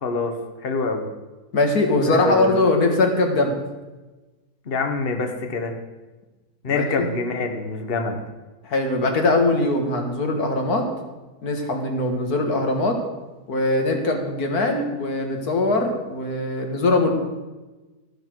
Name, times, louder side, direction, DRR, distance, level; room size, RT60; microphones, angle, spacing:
voice 1, 0.0-0.3 0.6-1.0 2.1-2.6 4.7-5.7 6.6-8.2, left 4 dB, 40° left, 5 dB, 1.4 m, -25 dB
voice 2, 1.5-3.6 6.7-7.1 8.6-10.9 11.4-13.0 13.5-17.1, left 2 dB, 85° left, 3 dB, 2.3 m, -21 dB
13.5 x 11.5 x 4.7 m, 1.2 s
omnidirectional pair, 1.6 m